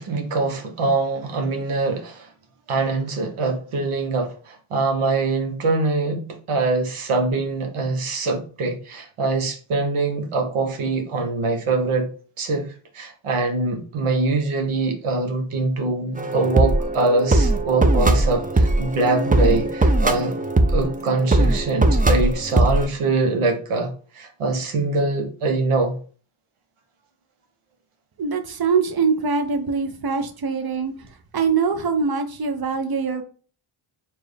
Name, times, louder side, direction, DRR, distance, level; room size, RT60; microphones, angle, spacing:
voice 1, 0.0-2.3 2.7-12.1 12.4-20.4 20.7-26.0, right 3 dB, 80° right, 1.0 m, -23 dB
sound 1, 16.2-22.9, right 2 dB, 15° right, 0.5 m, -20 dB
voice 2, 28.2-31.1 31.3-33.2, right 5 dB, 45° right, 0.8 m, -23 dB
4.4 x 2.5 x 3.3 m
cardioid pair, 45°, 50 cm